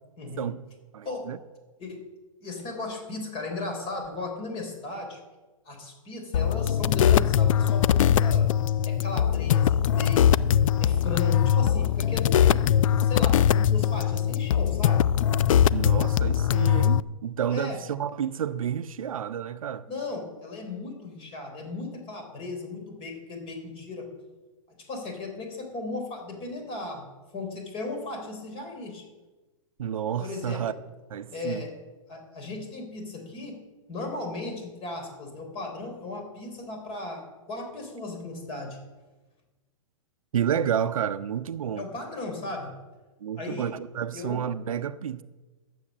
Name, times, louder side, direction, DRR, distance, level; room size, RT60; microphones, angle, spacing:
voice 1, 0.2-0.6 1.0-1.3 1.8-2.0 2.4-5.2 5.7-8.5 8.9-15.1 17.5-17.8 19.9-24.1 24.9-27.1 27.3-29.0 30.2-30.8 31.3-31.7 32.1-33.6 33.9-38.8 41.8-42.7 43.4-43.7 44.1-44.4, left 3 dB, 30° left, 3.8 m, -36 dB
voice 2, 0.9-1.4 15.7-19.9 29.8-30.7 31.1-31.7 40.3-41.9 43.2-45.2, right 9 dB, 80° right, 0.7 m, -30 dB
sound 1, 6.3-17.0, left 9 dB, 70° left, 0.4 m, -21 dB
12.0 x 7.7 x 7.4 m
hypercardioid pair, 125°, 17 cm